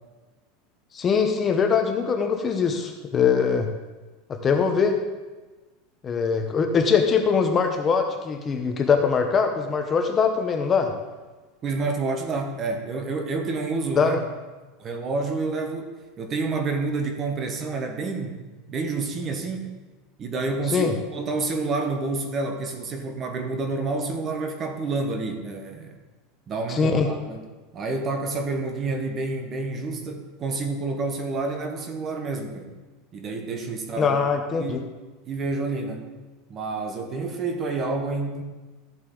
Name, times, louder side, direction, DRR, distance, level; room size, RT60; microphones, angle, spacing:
voice 1, 0.9-3.7 4.3-5.0 6.0-10.9 14.0-14.2 20.7-20.9 26.7-27.1 34.0-34.8, left 6 dB, 20° left, 5 dB, 0.7 m, -22 dB
voice 2, 11.6-14.2 14.8-15.9 16.2-18.4 18.7-19.7 20.2-26.0 26.5-27.4 27.7-32.7 33.1-34.2 34.6-34.8 35.2-36.1 36.5-38.4, right 3 dB, 25° right, 5 dB, 1.1 m, -29 dB
13.5 x 8.0 x 3.8 m, 1.2 s
supercardioid pair, 160°, 0 cm